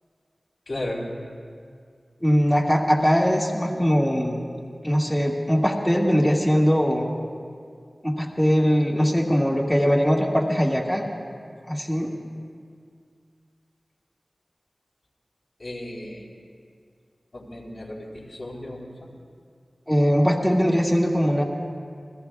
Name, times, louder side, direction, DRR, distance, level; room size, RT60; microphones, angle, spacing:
voice 1, 0.7-1.1 15.6-16.3 17.3-19.1, left 1 dB, 70° left, -4 dB, 3.9 m, -34 dB
voice 2, 2.2-4.4 4.8-7.1 8.0-11.1 11.7-12.2 19.9-21.4, equal, 5° left, -3 dB, 1.8 m, -21 dB
29.0 x 20.5 x 2.4 m, 2.2 s
wide cardioid pair, 50°, 0 cm